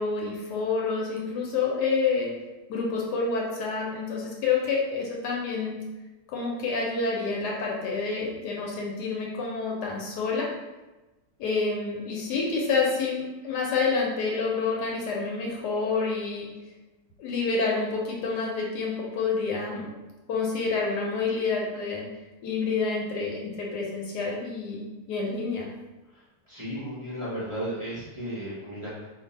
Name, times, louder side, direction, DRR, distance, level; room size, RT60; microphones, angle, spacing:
voice 1, 0.0-2.3 2.7-5.8 6.3-10.5 11.4-16.5 17.2-19.9 20.3-22.0 22.4-25.6, left 4 dB, 80° left, -3 dB, 1.2 m, -28 dB
voice 2, 26.5-29.2, equal, 50° right, -10 dB, 0.3 m, -34 dB
2.5 x 2.5 x 4.0 m, 1.1 s
omnidirectional pair, 1.9 m